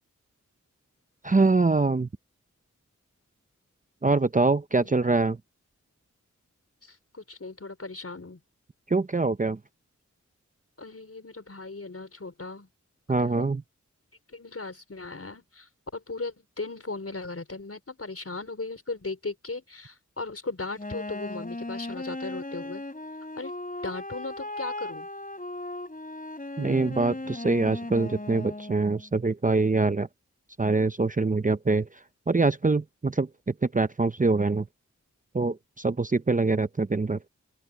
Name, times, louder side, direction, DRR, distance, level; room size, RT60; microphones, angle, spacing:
voice 1, 1.2-2.1 4.0-5.4 8.9-9.6 13.1-13.6 26.6-30.1 30.6-34.7 35.3-37.2, right 3 dB, 25° right, 0.6 m, -24 dB
voice 2, 6.8-8.4 10.8-12.7 13.2-13.5 14.3-22.8 23.4-23.5 23.8-25.1, left 3 dB, 50° left, 5.3 m, -37 dB
Wind instrument woodwind instrument, 20.7-29.1, left 2 dB, 30° left, 3.6 m, -37 dB
open air
wide cardioid pair, 75°, 30 cm